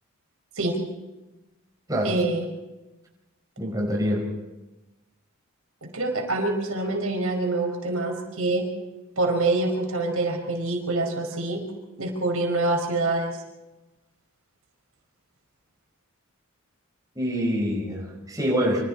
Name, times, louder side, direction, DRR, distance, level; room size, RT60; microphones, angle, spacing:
voice 1, 2.0-2.4 5.8-8.7 9.2-11.6 12.0-13.4, right 2 dB, 80° right, 3 dB, 5.1 m, -25 dB
voice 2, 3.6-4.3 17.1-18.8, equal, 15° right, -1 dB, 5.0 m, -25 dB
27.5 x 25.5 x 4.4 m, 1.1 s
head